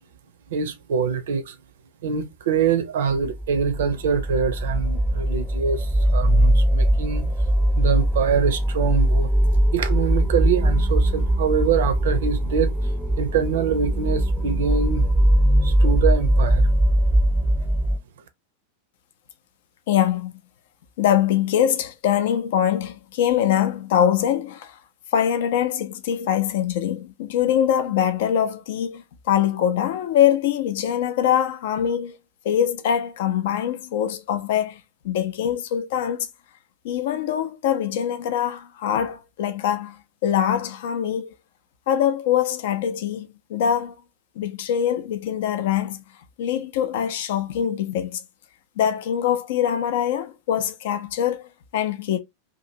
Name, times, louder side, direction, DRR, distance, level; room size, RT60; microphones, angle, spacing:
voice 1, 0.5-1.6 2.0-7.2 7.8-9.3 9.7-12.7 13.2-15.0 15.6-16.7, right 7 dB, 60° right, 0.5 m, -24 dB
sound 1, 3.2-18.0, right 1 dB, ahead, 0.5 m, -21 dB
voice 2, 19.9-20.3 21.0-24.8 25.1-32.2 32.4-36.3 36.8-41.3 41.9-44.0 44.4-46.0 46.4-48.2 48.8-52.2, left 10 dB, 55° left, 0.5 m, -23 dB
2.7 x 2.6 x 2.6 m
figure-of-eight pair, 90°, 0 cm